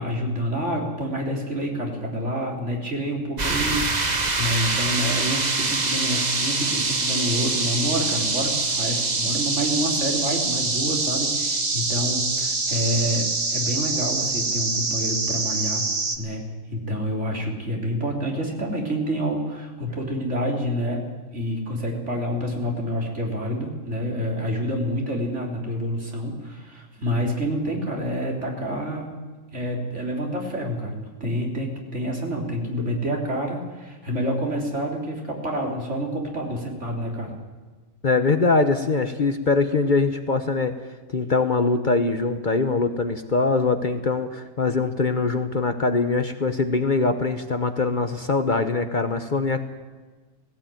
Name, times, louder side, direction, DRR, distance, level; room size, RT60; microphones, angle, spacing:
voice 1, 0.0-15.8 16.2-21.1 21.3-29.1 29.5-37.3, equal, 60° right, 0 dB, 3.8 m, -28 dB
sound 1, 3.4-16.2, right 3 dB, 35° right, 1.5 m, -25 dB
voice 2, 38.0-40.8 41.1-49.6, left 3 dB, 40° left, 8 dB, 1.1 m, -22 dB
17.5 x 17.0 x 9.2 m, 1.3 s
omnidirectional pair, 1.4 m